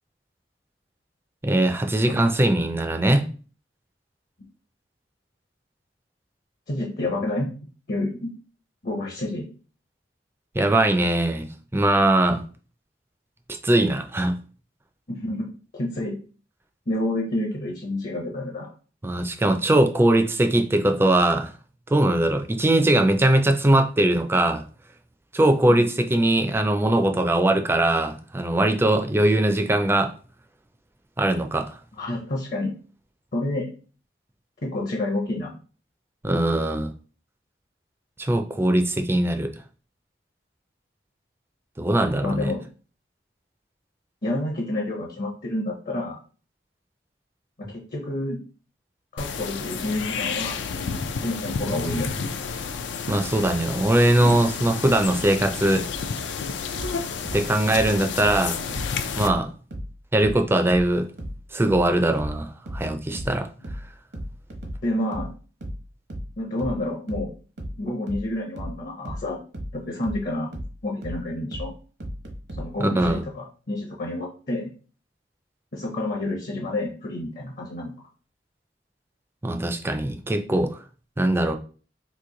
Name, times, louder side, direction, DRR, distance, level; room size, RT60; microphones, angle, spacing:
voice 1, 1.4-3.3 10.5-12.4 13.6-14.4 19.0-21.5 21.9-24.6 25.3-30.1 31.2-31.7 36.2-36.9 38.2-39.5 41.8-42.5 53.1-55.9 57.3-58.6 59.2-59.5 60.1-61.0 61.5-63.5 72.8-73.2 79.4-80.8 81.2-81.5, right 1 dB, 15° right, 6 dB, 0.4 m, -21 dB
voice 2, 6.7-7.5 7.9-8.3 8.8-9.5 15.1-16.2 16.9-18.7 32.0-32.7 33.3-33.7 34.6-35.5 42.2-42.6 44.2-46.2 47.6-48.4 49.1-50.6 51.2-52.2 64.8-65.3 66.4-67.3 67.8-69.4 69.7-70.5 70.8-71.7 72.6-74.7 75.7-78.0, left 1 dB, 50° left, 0 dB, 0.7 m, -29 dB
sound 1, 49.2-59.3, left 5 dB, 90° left, 0.4 m, -31 dB
sound 2, 56.8-59.9 60.2-73.2, equal, 70° right, 0.9 m, -35 dB
3.0 x 2.5 x 3.7 m, 0.39 s
head